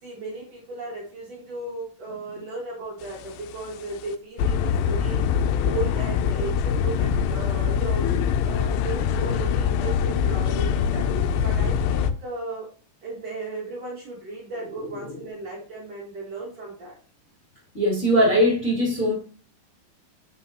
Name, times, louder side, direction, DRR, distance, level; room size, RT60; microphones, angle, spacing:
voice 1, 0.0-5.2 5.6-12.7 13.0-16.9, right 2 dB, 50° right, -4 dB, 2.5 m, -35 dB
sound 1, 3.2-3.5 3.9-4.0 4.4-12.1, left 7 dB, 80° left, 2.1 m, -23 dB
voice 2, 17.7-19.1, equal, 25° left, -7 dB, 1.9 m, -20 dB
7.8 x 5.8 x 2.8 m, 0.42 s
omnidirectional pair, 4.3 m